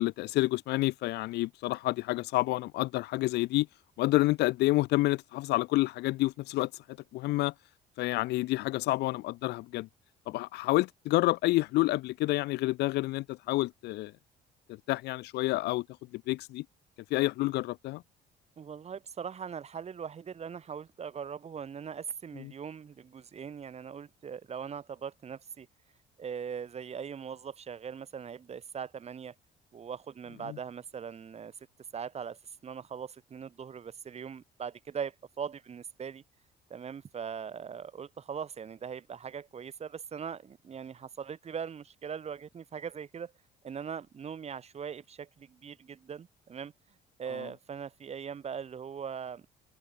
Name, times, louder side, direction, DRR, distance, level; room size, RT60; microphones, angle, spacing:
voice 1, 0.0-3.7 4.0-6.7 7.1-7.5 8.0-9.9 10.3-14.1 14.9-15.8 16.1-16.6 17.1-18.0 22.4-22.5 30.5-30.6 47.4-47.5, left 19 dB, 85° left, 1.3 m, -29 dB
voice 2, 18.6-25.7 26.2-29.3 29.7-31.5 31.9-36.2 36.7-43.3 43.6-46.7 47.2-49.5, right 7 dB, 40° right, 4.0 m, -40 dB
cardioid pair, 110°, 17 cm